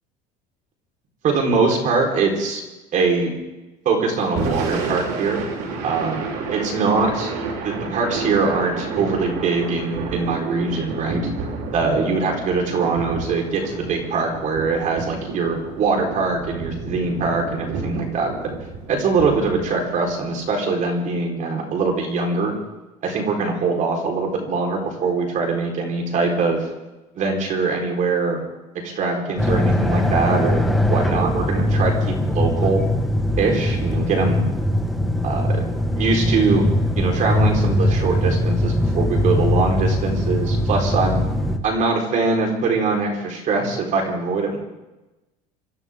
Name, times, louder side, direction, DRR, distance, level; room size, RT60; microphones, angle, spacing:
voice 1, 1.2-2.6 2.9-3.3 3.8-5.4 5.8-6.3 6.5-7.3 7.6-11.2 11.7-18.5 18.9-22.5 23.0-26.7 27.1-28.4 28.8-32.8 33.4-34.4 35.2-36.6 37.0-41.2 41.6-44.6, right 4 dB, 50° right, 1 dB, 4.5 m, -22 dB
Thunder / Rain, 4.2-20.5, right 3 dB, 80° right, 3.9 m, -30 dB
sound 1, 29.4-41.6, left 1 dB, ahead, 1.8 m, -21 dB
25.5 x 14.5 x 3.8 m, 1.0 s
cardioid pair, 120°, 17 cm